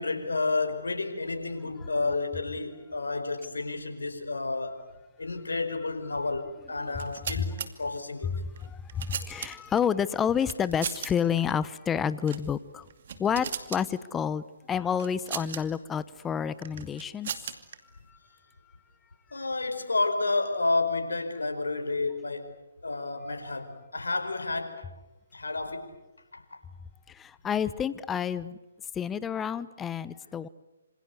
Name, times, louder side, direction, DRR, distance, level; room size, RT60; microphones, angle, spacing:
voice 1, 0.0-4.8 5.2-8.4 9.4-9.5 19.3-22.5 22.8-24.8 25.3-25.9 26.3-26.6, left 3 dB, 85° left, 7 dB, 4.9 m, -30 dB
sound 1, 6.9-7.7 8.6-9.8 10.4-11.1 11.4-11.5 12.2-12.5 12.9-13.8 15.0-15.6 16.6-17.8, right 8 dB, 50° right, 2.5 m, -37 dB
voice 2, 8.9-12.8 13.2-17.3 27.2-28.6 29.0-30.5, left 8 dB, 10° left, 17 dB, 0.9 m, -29 dB
27.0 x 27.0 x 8.1 m, 1.0 s
figure-of-eight pair, 145°, 0 cm